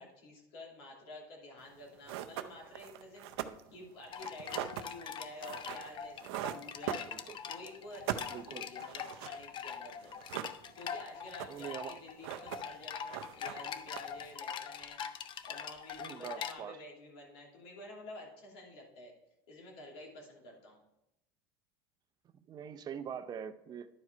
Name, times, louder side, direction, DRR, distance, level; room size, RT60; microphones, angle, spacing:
voice 1, 0.0-7.1 7.4-10.2 10.7-15.0 15.4-19.1 19.5-20.8, left 1 dB, 80° left, 2.8 m, -50 dB
sound 1, 1.7-1.8 2.1-7.5 7.8-9.4 9.7-9.8 10.0-10.9 11.2-11.8 12.1-12.8 13.1-14.3, right 12 dB, 85° right, 0.5 m, -41 dB
sound 2, 4.1-16.5, left 7 dB, 35° left, 0.5 m, -43 dB
voice 2, 7.1-7.4 8.3-8.7 11.5-12.0 16.0-16.8 22.3-23.9, right 8 dB, 30° right, 0.6 m, -43 dB
11.0 x 4.7 x 4.4 m
supercardioid pair, 125°, 13 cm